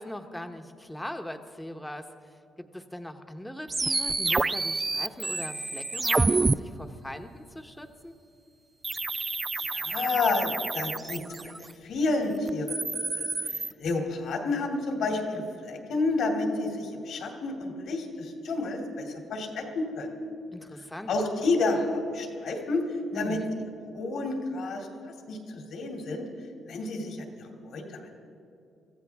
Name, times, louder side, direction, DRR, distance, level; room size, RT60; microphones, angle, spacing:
voice 1, 0.0-2.1 2.6-8.1 20.5-21.1 23.1-23.4, left 1 dB, 5° left, 7 dB, 1.1 m, -40 dB
sound 1, 3.7-6.5 8.8-11.7 12.5-13.7, right 3 dB, 25° right, 0.3 m, -28 dB
voice 2, 9.6-11.5 11.8-20.2 21.1-23.4 23.9-26.3 26.7-28.2, left 3 dB, 70° left, 2 dB, 2.6 m, -30 dB
24.0 x 15.0 x 3.6 m, 2.6 s
cardioid pair, 90°, 0 cm